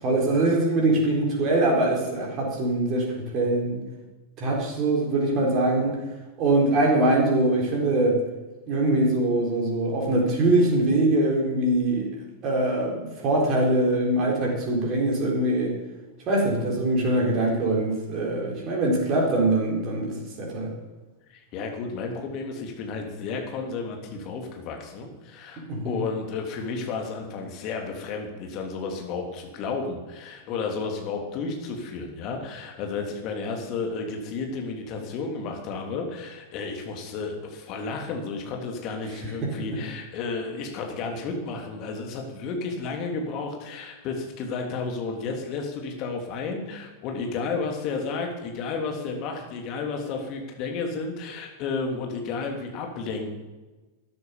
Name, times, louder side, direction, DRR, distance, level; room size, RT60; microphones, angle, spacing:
voice 1, 0.0-3.8 4.4-6.0 6.4-8.2 8.7-12.1 12.4-15.7 16.3-20.7 25.6-26.0 39.4-39.5, right 2 dB, 35° right, -1 dB, 3.9 m, -23 dB
voice 2, 21.3-53.4, left 4 dB, 40° left, 2 dB, 3.1 m, -32 dB
13.0 x 10.5 x 7.1 m, 1.2 s
figure-of-eight pair, 90°, 0 cm